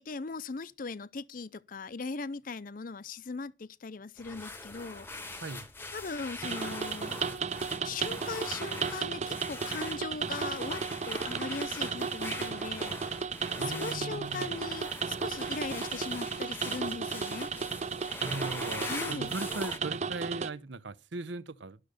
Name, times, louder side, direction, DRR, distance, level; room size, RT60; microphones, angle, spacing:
voice 1, 0.0-5.5 5.9-7.2 7.8-13.0 13.6-17.5 18.8-19.3, left 4 dB, 45° left, 0.5 m, -39 dB
sound 1, 4.2-19.8, left 2 dB, 10° left, 0.9 m, -43 dB
sound 2, 6.4-20.5, right 5 dB, 35° right, 0.6 m, -34 dB
voice 2, 13.6-14.5 18.2-21.8, right 3 dB, 75° right, 0.8 m, -38 dB
12.5 x 6.6 x 6.5 m
head